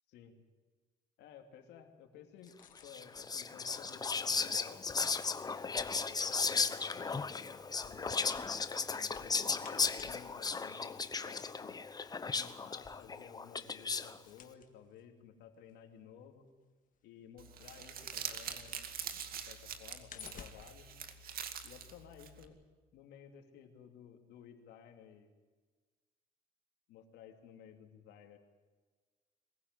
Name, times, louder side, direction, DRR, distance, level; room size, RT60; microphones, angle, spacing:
voice 1, 0.1-0.4 1.2-2.6 2.8-5.1 5.6-8.3 8.9-11.8 12.3-16.4 17.0-18.8 19.1-20.9 21.6-22.6 22.9-25.3 26.9-28.4, left 8 dB, 85° left, 5 dB, 2.8 m, -55 dB
sound 1, 2.4-8.4 8.7-18.4 18.8-21.8 22.1-22.2, left 8 dB, 50° left, 1.8 m, -59 dB
Whispering, 2.9-14.2, left 4 dB, 25° left, 1.0 m, -36 dB
Crumpling crinkling, 17.4-22.4, right 8 dB, 60° right, 2.2 m, -44 dB
22.5 x 15.5 x 9.7 m, 1.4 s
cardioid pair, 110°, 17 cm